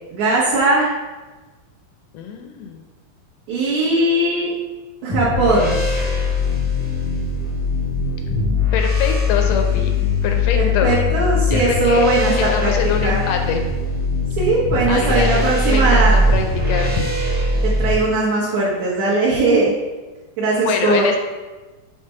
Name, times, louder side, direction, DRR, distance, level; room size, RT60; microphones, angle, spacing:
voice 1, 0.1-0.9 3.5-4.5 5.0-6.0 10.5-12.7 13.0-13.3 14.4-16.1 17.6-19.7 20.4-21.1, right 2 dB, 75° right, -9 dB, 2.6 m, -19 dB
voice 2, 2.1-2.8 8.7-9.9 10.2-11.0 11.5-12.0 12.4-13.6 14.9-17.0 20.6-21.2, left 6 dB, 75° left, 4 dB, 1.5 m, -24 dB
sound 1, 5.1-17.9, left 2 dB, 15° right, 0.3 m, -20 dB
6.7 x 3.4 x 5.5 m, 1.2 s
omnidirectional pair, 3.4 m